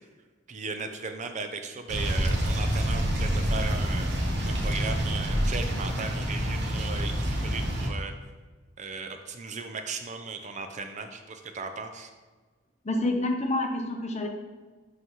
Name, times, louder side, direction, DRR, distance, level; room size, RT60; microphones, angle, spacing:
voice 1, 0.5-8.1 8.8-12.1, right 4 dB, 40° right, 6 dB, 0.5 m, -37 dB
sound 1, 1.9-7.9, equal, 60° right, 1.1 m, -27 dB
voice 2, 12.8-14.3, left 2 dB, 35° left, 3 dB, 0.8 m, -27 dB
11.0 x 3.9 x 3.1 m, 1.4 s
head